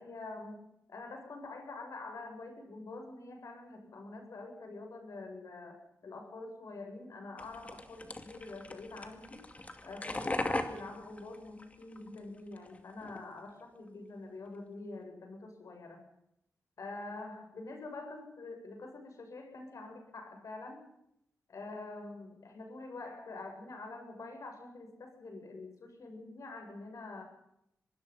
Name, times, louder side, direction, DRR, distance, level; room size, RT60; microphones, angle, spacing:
voice 1, 0.0-9.5 9.8-16.0 16.8-20.9 21.5-27.2, left 2 dB, 65° left, 4 dB, 7.7 m, -46 dB
sound 1, 7.4-12.2 12.5-13.2, left 2 dB, 25° left, 2.4 m, -39 dB
25.0 x 21.0 x 5.7 m, 0.76 s
wide cardioid pair, 115°, 6 cm